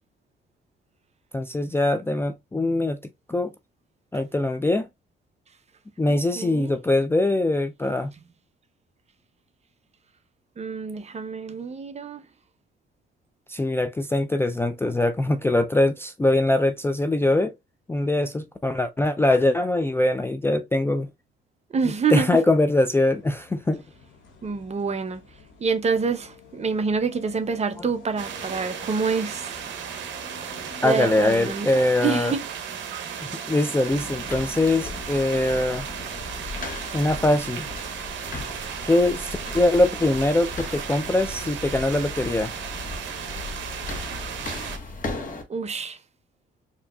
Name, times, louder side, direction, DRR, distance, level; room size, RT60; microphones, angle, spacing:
voice 1, 1.3-3.0 3.3-3.5 4.1-4.9 6.0-8.1 13.5-17.5 17.9-21.1 22.1-23.8 27.8-27.9 30.8-32.4 33.5-35.8 36.9-37.7 38.9-42.5, left 2 dB, 10° left, 0.3 m, -22 dB
voice 2, 6.4-6.7 10.6-12.2 21.7-22.3 24.4-25.2 25.6-29.6 30.8-31.7 32.0-32.4 45.5-46.0, right 5 dB, 35° right, 0.6 m, -27 dB
sound 1, 23.1-31.0, left 4 dB, 75° left, 1.8 m, -48 dB
sound 2, 28.2-44.8, right 8 dB, 70° right, 0.8 m, -35 dB
sound 3, 33.9-45.4, left 3 dB, 45° left, 1.2 m, -37 dB
4.5 x 2.7 x 2.3 m
cardioid pair, 90°, 20 cm